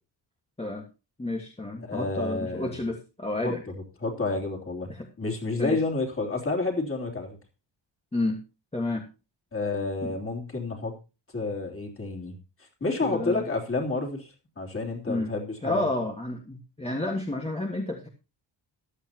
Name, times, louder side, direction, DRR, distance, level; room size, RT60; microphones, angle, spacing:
voice 1, 1.2-3.6 4.9-5.0 5.6-5.8 8.1-8.4 8.7-9.0 10.0-10.2 13.0-13.5 15.1-15.3 15.6-18.1, left 2 dB, 15° left, 1 dB, 1.6 m, -30 dB
voice 2, 1.9-2.8 3.4-3.5 4.0-4.9 5.2-7.4 9.5-10.9 11.3-12.4 12.8-15.9, left 3 dB, 30° left, 0 dB, 3.3 m, -29 dB
15.0 x 11.5 x 2.9 m, 0.30 s
wide cardioid pair, 150°, 45 cm